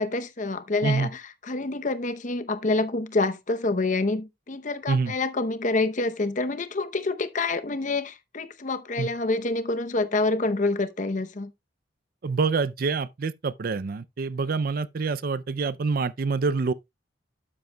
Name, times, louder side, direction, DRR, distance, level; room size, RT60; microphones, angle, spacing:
voice 1, 0.0-11.5, left 3 dB, 45° left, 0.8 m, -27 dB
voice 2, 12.2-16.7, right 4 dB, 50° right, 0.4 m, -26 dB
12.0 x 7.8 x 2.2 m
head